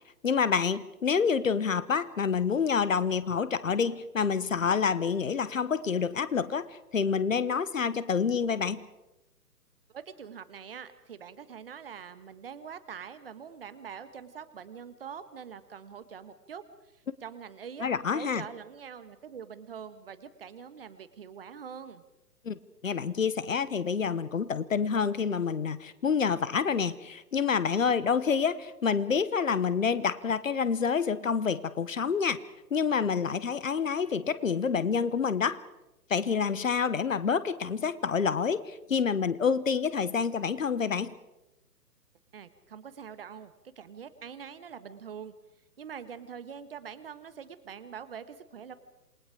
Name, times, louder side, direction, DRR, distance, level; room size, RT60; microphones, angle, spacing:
voice 1, 0.2-8.8 17.8-18.4 22.4-32.4 32.7-35.6 36.1-41.1, left 6 dB, 55° left, 17 dB, 1.1 m, -28 dB
voice 2, 9.9-16.6 16.9-22.0 42.3-45.3 45.8-48.7, right 7 dB, 35° right, 13 dB, 1.3 m, -44 dB
27.5 x 20.5 x 5.0 m, 0.96 s
figure-of-eight pair, 135°, 48 cm